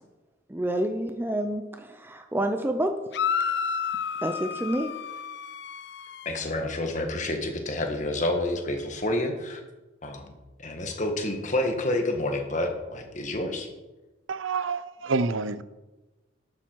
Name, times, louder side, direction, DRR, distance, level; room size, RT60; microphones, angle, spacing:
voice 1, 0.5-3.0 4.2-4.9, right 1 dB, 10° right, 7 dB, 0.5 m, -28 dB
sound 1, 3.1-6.4, left 7 dB, 55° left, 0.5 m, -31 dB
voice 2, 6.2-9.6 10.0-13.7, left 1 dB, 40° left, 4 dB, 1.6 m, -29 dB
voice 3, 14.3-15.6, right 4 dB, 80° right, 14 dB, 0.6 m, -28 dB
12.0 x 8.8 x 4.6 m, 1.1 s
head